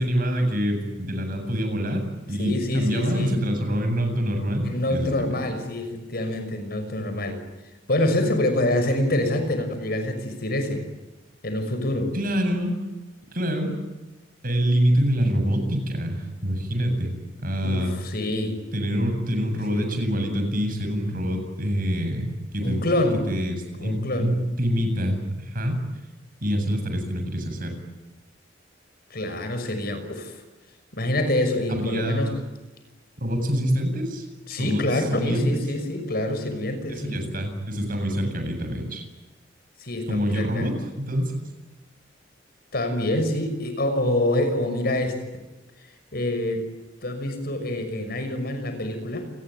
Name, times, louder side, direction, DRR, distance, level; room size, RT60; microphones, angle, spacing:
voice 1, 0.0-2.0 2.3-5.4 12.1-12.8 13.3-13.7 14.4-17.1 17.4-17.9 18.7-22.9 23.3-25.8 26.4-27.8 31.7-32.3 33.2-35.5 36.9-39.0 40.1-41.3, equal, 50° right, 6 dB, 8.0 m, -26 dB
voice 2, 2.4-3.4 4.7-7.4 7.9-10.8 11.4-12.1 17.6-18.6 19.7-19.9 22.6-23.2 23.8-24.3 29.1-30.4 30.9-32.3 34.5-37.2 39.8-40.7 42.7-45.2 46.1-46.7 47.0-49.3, left 1 dB, 55° left, 8 dB, 6.0 m, -26 dB
29.5 x 21.0 x 9.4 m, 1.1 s
head